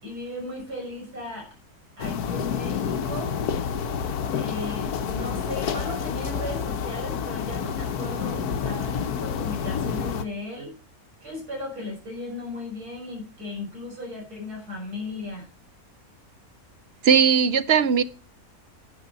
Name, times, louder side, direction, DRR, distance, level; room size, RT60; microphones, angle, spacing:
voice 1, 0.0-1.5 2.0-3.3 4.3-10.8 11.2-15.5, left 2 dB, 85° right, 6.6 m, -36 dB
sound 1, 2.0-10.2, left 7 dB, 90° left, 1.5 m, -29 dB
voice 2, 17.0-18.0, right 7 dB, 50° right, 0.9 m, -18 dB
14.5 x 9.8 x 4.0 m
omnidirectional pair, 1.6 m